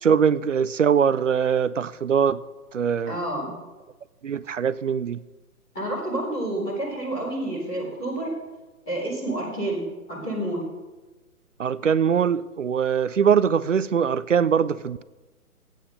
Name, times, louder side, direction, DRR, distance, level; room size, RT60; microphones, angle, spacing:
voice 1, 0.0-2.4 2.7-3.2 4.2-5.2 11.6-15.0, right 7 dB, 55° right, 0.5 m, -22 dB
voice 2, 3.1-3.5 5.7-8.3 8.9-10.6, right 1 dB, 5° left, 0.6 m, -29 dB
14.0 x 9.1 x 5.2 m
figure-of-eight pair, 135°, 45 cm